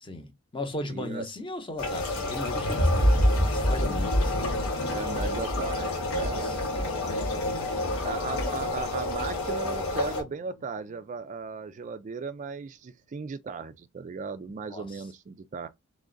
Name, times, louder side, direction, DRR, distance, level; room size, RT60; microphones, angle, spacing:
voice 1, 0.0-5.0 6.2-8.0 14.7-15.0, left 1 dB, 25° left, 0.8 m, -38 dB
voice 2, 0.9-1.2 4.9-6.8 8.0-15.7, right 5 dB, 35° right, 0.3 m, -37 dB
sound 1, 1.8-10.2, left 1 dB, 85° left, 1.4 m, -27 dB
sound 2, 1.9-11.3 11.6-11.9, left 1 dB, 65° left, 0.9 m, -41 dB
3.7 x 3.2 x 3.8 m
head